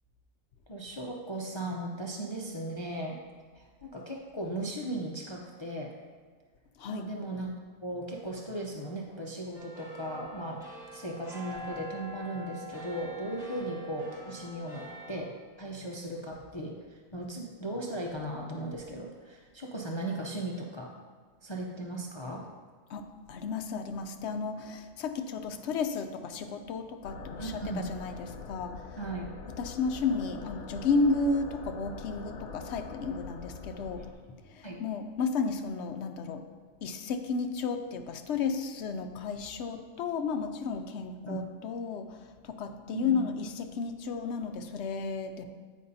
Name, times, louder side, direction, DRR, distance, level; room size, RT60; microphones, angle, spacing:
voice 1, 0.7-3.2 3.6-5.9 6.9-7.5 7.8-10.6 10.9-20.9 21.4-22.5 27.4-27.8 29.0-29.3 34.6-34.8 41.3-41.4 42.9-43.3, right 1 dB, 40° left, -1 dB, 0.4 m, -37 dB
sound 1, 9.5-15.2, equal, 5° right, 1.3 m, -45 dB
voice 2, 22.9-28.8 29.6-34.1 34.5-36.4 36.8-45.4, left 4 dB, 65° left, 7 dB, 0.8 m, -33 dB
sound 2, 27.0-34.1, left 4 dB, 85° left, 1.3 m, -44 dB
13.5 x 5.3 x 2.7 m, 1.5 s
omnidirectional pair, 1.4 m